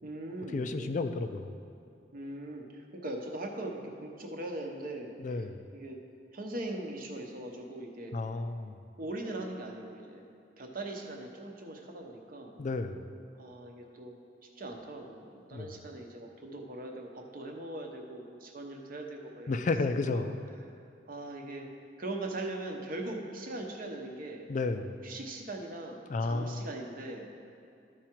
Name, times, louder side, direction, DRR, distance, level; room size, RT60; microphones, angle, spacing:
voice 1, 0.0-1.0 2.1-5.5 5.7-6.0 6.3-8.1 9.0-10.3 10.6-12.6 13.3-14.2 14.6-19.6 19.9-20.3 21.1-21.7 22.0-24.5 25.0-27.3, right 1 dB, 50° right, 2 dB, 0.9 m, -40 dB
voice 2, 0.5-1.5 5.2-5.6 8.1-8.7 12.6-13.1 15.5-15.7 19.5-20.4 24.5-25.0 26.1-26.7, left 3 dB, 45° left, 8 dB, 0.4 m, -32 dB
13.0 x 4.8 x 4.5 m, 2.5 s
head